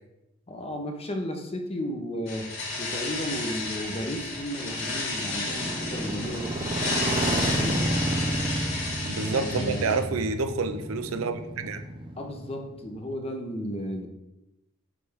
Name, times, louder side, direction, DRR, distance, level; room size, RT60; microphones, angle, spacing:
voice 1, 0.5-2.5 2.8-6.6 7.5-7.9 9.2-10.1 12.2-14.1, equal, 30° left, 4 dB, 0.7 m, -34 dB
sound 1, 2.3-10.0, left 3 dB, 75° left, 2.3 m, -32 dB
Motorcycle, 3.0-13.0, right 1 dB, 25° right, 0.6 m, -31 dB
voice 2, 9.0-11.8, right 4 dB, 70° right, 9 dB, 0.5 m, -28 dB
8.4 x 3.3 x 3.5 m, 0.91 s
head